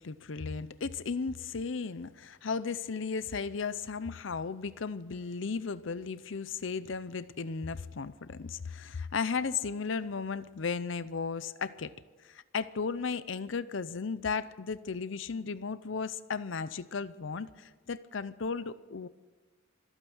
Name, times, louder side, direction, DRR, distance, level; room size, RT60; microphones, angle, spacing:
voice 1, 0.0-11.9 12.2-19.1, left 5 dB, 75° left, 16 dB, 0.6 m, -35 dB
25.0 x 9.0 x 6.3 m, 1.3 s
head